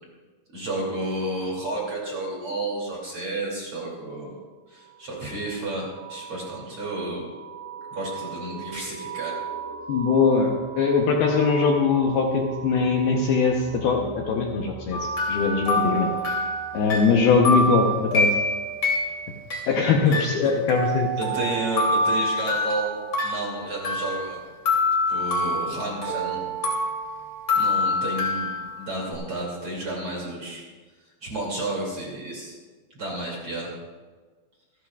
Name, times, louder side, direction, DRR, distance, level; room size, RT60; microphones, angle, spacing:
voice 1, 0.5-4.3 4.7-7.2 7.9-9.4 19.7-20.5 21.2-24.4 25.1-26.5 27.5-30.6 31.2-32.6 32.9-33.7, right 2 dB, 35° right, -3 dB, 2.9 m, -31 dB
sound 1, 4.8-19.2, right 6 dB, 65° right, 2.4 m, -38 dB
voice 2, 9.9-15.0 15.3-16.1 16.7-18.3 19.7-21.3, left 5 dB, 75° left, 0 dB, 2.4 m, -21 dB
sound 2, 14.9-19.6 20.1-24.4 24.7-29.1, left 1 dB, 30° left, 2.7 m, -26 dB
27.0 x 12.0 x 2.4 m, 1.4 s
omnidirectional pair, 5.3 m